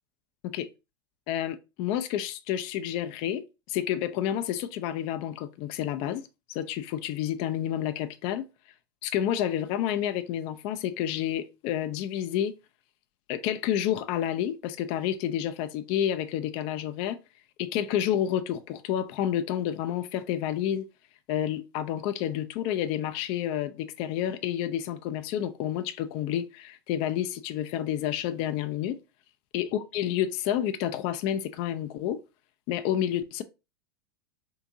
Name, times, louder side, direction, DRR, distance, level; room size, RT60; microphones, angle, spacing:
voice 1, 1.3-6.2 6.5-8.5 9.0-12.5 13.3-17.2 17.6-20.9 21.3-29.0 29.5-32.2 32.7-33.4, left 11 dB, 45° left, 0.4 m, -29 dB
3.6 x 2.5 x 2.7 m
hypercardioid pair, 95°, 13 cm